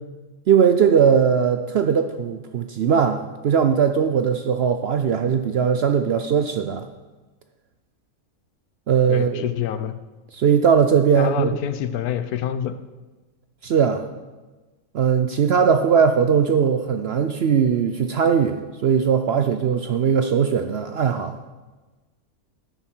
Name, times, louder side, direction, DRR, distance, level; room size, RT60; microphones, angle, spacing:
voice 1, 0.5-6.9 8.9-9.4 10.3-11.6 13.6-14.0 14.9-21.3, right 7 dB, 65° right, 7 dB, 0.6 m, -19 dB
voice 2, 9.1-9.9 11.1-12.8, left 10 dB, 85° left, 12 dB, 1.2 m, -26 dB
13.0 x 7.1 x 4.4 m, 1.2 s
omnidirectional pair, 1.5 m